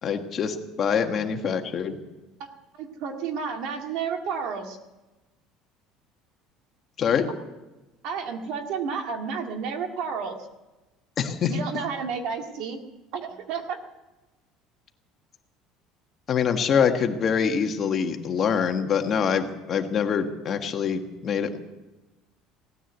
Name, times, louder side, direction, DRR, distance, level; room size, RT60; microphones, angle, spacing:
voice 1, 0.0-2.0 7.0-7.3 11.2-11.6 16.3-21.6, left 7 dB, 35° left, 6 dB, 1.4 m, -25 dB
voice 2, 2.7-4.8 8.0-10.4 11.5-12.8 13.1-13.8, right 6 dB, 65° right, 4 dB, 2.0 m, -31 dB
17.0 x 10.0 x 8.1 m, 1.1 s
cardioid pair, 135°, 0 cm